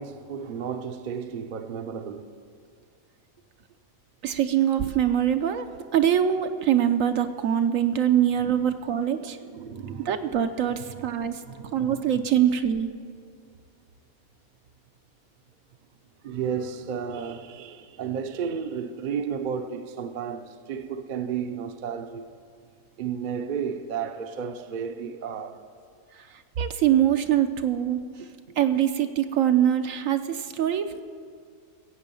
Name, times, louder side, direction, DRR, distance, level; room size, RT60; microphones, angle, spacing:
voice 1, 0.0-2.3 8.6-8.7 9.4-10.1 10.6-12.1 16.2-22.3 23.0-25.6, right 7 dB, 45° right, 0.7 m, -33 dB
voice 2, 4.2-5.7 5.9-9.4 10.1-11.4 11.7-12.9 26.6-28.0 28.6-31.0, right 10 dB, 70° right, 1.0 m, -23 dB
16.0 x 8.3 x 6.9 m
omnidirectional pair, 1.5 m